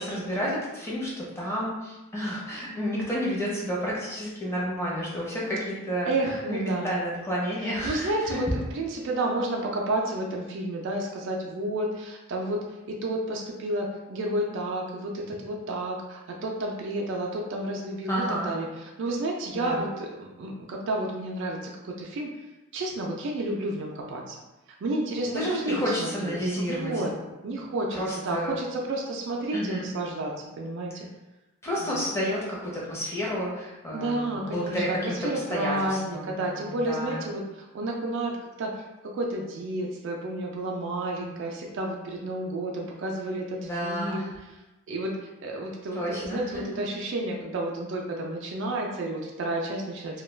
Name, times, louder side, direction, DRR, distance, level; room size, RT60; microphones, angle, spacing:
voice 1, 0.0-6.1 6.5-8.4 18.1-18.5 19.5-19.9 25.2-27.2 27.9-28.6 29.5-29.9 31.6-37.3 43.6-44.3 45.9-46.6, equal, 10° left, -5 dB, 0.6 m, -30 dB
voice 2, 6.0-6.9 7.6-12.6 12.9-22.3 22.7-24.4 24.8-27.1 27.4-30.9 31.8-32.0 33.9-38.3 38.6-38.8 39.1-44.2 44.9-45.1 45.4-50.2, right 1 dB, 60° right, -1 dB, 0.3 m, -31 dB
2.2 x 2.2 x 3.1 m, 1.0 s
head